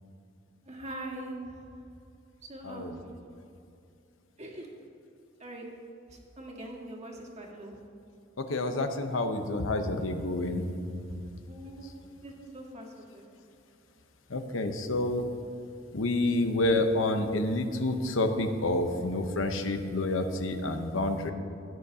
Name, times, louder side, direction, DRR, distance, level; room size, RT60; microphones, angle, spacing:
voice 1, 0.6-1.7 2.4-3.1 4.4-4.7 5.4-5.6 6.1-7.8 11.5-11.9 12.2-13.2, right 1 dB, 35° right, -1 dB, 1.7 m, -42 dB
voice 2, 8.4-10.7 14.3-15.2 15.9-21.3, left 2 dB, 85° left, 7 dB, 0.9 m, -28 dB
16.5 x 9.2 x 2.8 m, 2.7 s
head